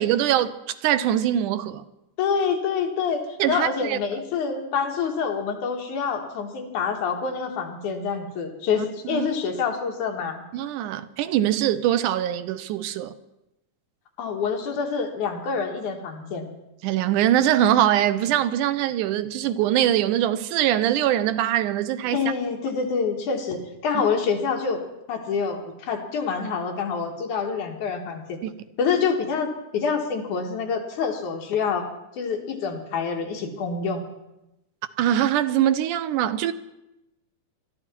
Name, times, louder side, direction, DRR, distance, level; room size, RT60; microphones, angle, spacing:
voice 1, 0.0-1.8 3.4-4.0 8.8-9.3 10.5-13.1 16.8-22.2 28.4-28.5 35.0-36.5, right 11 dB, 85° right, 2.2 m, -23 dB
voice 2, 2.2-3.2 3.5-10.4 14.2-16.5 22.1-24.8 25.1-28.4 28.8-29.5 29.7-31.9 32.2-34.0, left 5 dB, 75° left, 3.2 m, -26 dB
21.5 x 13.5 x 4.5 m
omnidirectional pair, 3.6 m